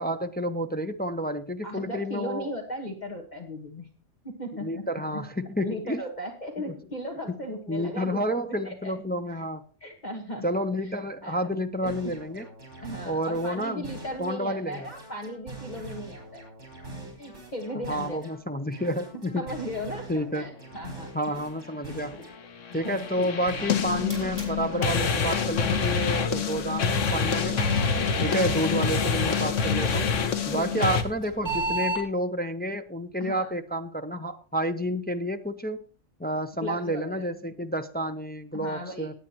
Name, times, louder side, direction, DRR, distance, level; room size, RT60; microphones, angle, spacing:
voice 1, 0.0-2.5 4.6-6.0 6.7-6.8 7.7-9.6 10.4-12.4 13.0-13.9 14.2-14.9 17.9-19.4 20.1-20.5 21.1-22.2 22.7-27.7 28.2-30.1 30.5-35.9 36.2-39.1, equal, 15° left, 7 dB, 0.4 m, -30 dB
voice 2, 1.6-3.9 4.2-5.2 5.6-8.2 8.6-8.9 9.3-9.4 9.8-11.9 12.8-16.4 17.2-18.3 18.8-18.9 19.3-21.4 22.1-22.3 22.8-23.3 28.2-28.5 30.5-30.9 33.2-33.5 36.6-37.3 38.5-39.1, equal, 35° left, 3 dB, 1.5 m, -37 dB
sound 1, 11.8-14.4 14.7-18.4 18.7-22.4 22.7-26.4 26.7-30.4 30.7-31.8, right 2 dB, 70° right, 5.3 m, -43 dB
sound 2, 22.7-31.0, left 5 dB, 85° left, 1.4 m, -26 dB
sound 3, 23.7-32.0, right 2 dB, 15° right, 5.2 m, -38 dB
18.5 x 8.9 x 2.9 m, 0.41 s
omnidirectional pair, 1.2 m